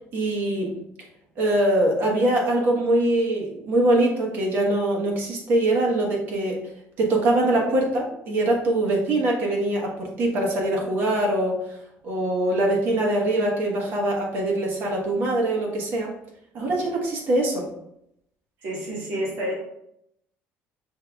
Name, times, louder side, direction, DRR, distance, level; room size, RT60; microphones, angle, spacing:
voice 1, 0.1-0.7 1.4-6.6 7.0-11.8 12.0-16.1 16.5-17.7, right 1 dB, 50° right, -1 dB, 1.2 m, -23 dB
voice 2, 18.6-19.5, equal, 75° right, -3 dB, 1.4 m, -29 dB
5.5 x 3.7 x 2.3 m, 0.77 s
cardioid pair, 175°, 4 cm